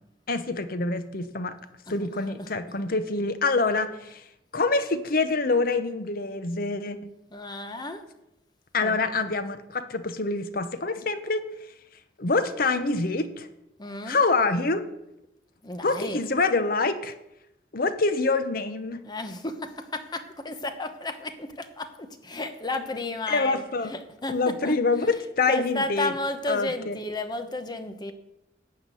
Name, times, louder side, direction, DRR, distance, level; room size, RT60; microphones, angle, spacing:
voice 1, 0.3-1.5 1.9-4.2 4.5-7.1 8.7-11.4 12.2-13.5 14.1-14.8 15.8-17.1 17.7-19.0 23.3-24.0 24.3-26.1 26.5-27.0, left 3 dB, 50° left, 11 dB, 0.8 m, -26 dB
voice 2, 2.0-2.5 7.3-8.0 8.8-9.0 13.8-14.2 15.6-16.2 19.0-23.6 23.9-24.7 25.5-28.1, left 2 dB, 25° left, 8 dB, 0.9 m, -33 dB
12.0 x 5.8 x 8.2 m, 0.87 s
head